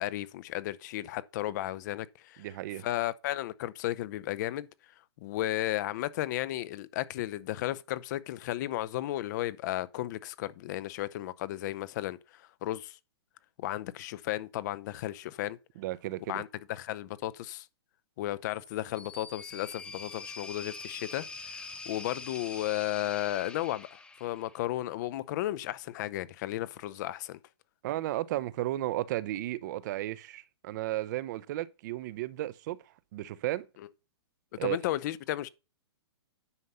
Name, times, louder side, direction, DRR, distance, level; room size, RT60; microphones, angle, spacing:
voice 1, 0.0-2.5 2.8-4.7 5.2-13.0 13.6-15.6 16.3-17.7 18.2-21.6 21.9-27.4 34.6-35.5, left 14 dB, 40° left, 0.6 m, -34 dB
voice 2, 2.4-2.8 15.8-16.4 27.8-32.8 33.1-33.7 34.6-34.8, right 15 dB, 45° right, 0.7 m, -34 dB
sound 1, 18.5-24.7, left 3 dB, 5° left, 0.9 m, -44 dB
9.7 x 5.4 x 5.5 m
hypercardioid pair, 145°, 14 cm